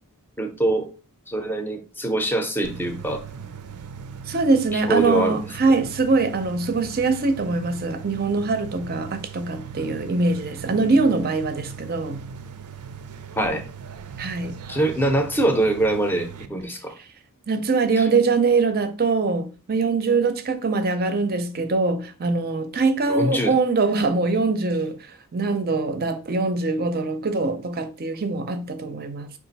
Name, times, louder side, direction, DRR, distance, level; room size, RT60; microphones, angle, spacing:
voice 1, 0.4-0.9 1.3-3.2 4.7-5.4 13.4-13.6 14.7-16.9 18.0-18.1 23.1-23.5, right 1 dB, 10° left, 0.6 m, -23 dB
sound 1, 2.6-16.5, right 6 dB, 90° right, 0.5 m, -39 dB
voice 2, 4.3-12.2 14.2-14.6 17.5-29.3, right 3 dB, 45° right, 0.6 m, -23 dB
4.9 x 2.5 x 4.0 m
head